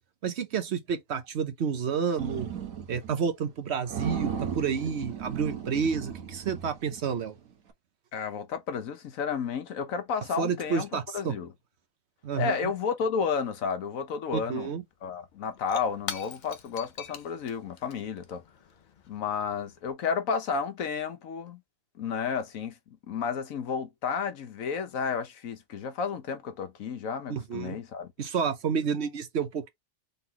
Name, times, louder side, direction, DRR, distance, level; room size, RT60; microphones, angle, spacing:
voice 1, 0.2-2.5 2.9-7.4 10.4-11.3 12.2-12.7 14.3-14.8 27.3-27.8 28.2-29.7, right 6 dB, 60° right, 1.0 m, -30 dB
sound 1, 2.2-3.2 3.5-3.6 3.9-7.3, right 8 dB, 85° right, 1.3 m, -36 dB
voice 2, 8.1-11.5 12.3-14.7 15.0-18.4 19.1-21.6 22.0-28.1, left 6 dB, 85° left, 1.3 m, -32 dB
Shatter / Crushing, 14.7-14.8 15.0-19.9, left 7 dB, 50° left, 0.6 m, -44 dB
4.0 x 3.8 x 2.8 m
omnidirectional pair, 1.4 m